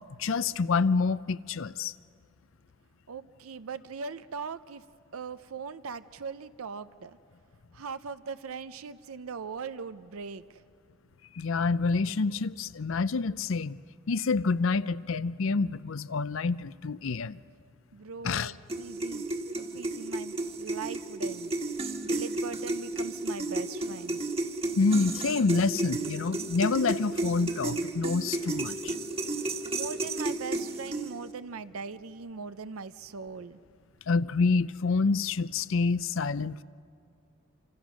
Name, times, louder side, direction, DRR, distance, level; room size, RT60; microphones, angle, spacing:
voice 1, 0.2-1.9 11.4-13.8 14.1-17.4 18.2-18.5 24.8-28.9 34.1-36.6, left 4 dB, 65° left, 0.5 m, -27 dB
voice 2, 3.1-4.8 5.1-7.2 7.7-10.4 17.9-19.2 19.6-21.5 22.0-24.2 29.7-33.6, right 5 dB, 80° right, 0.6 m, -40 dB
sound 1, 18.7-31.3, right 2 dB, 25° right, 1.5 m, -33 dB
27.0 x 27.0 x 6.3 m
head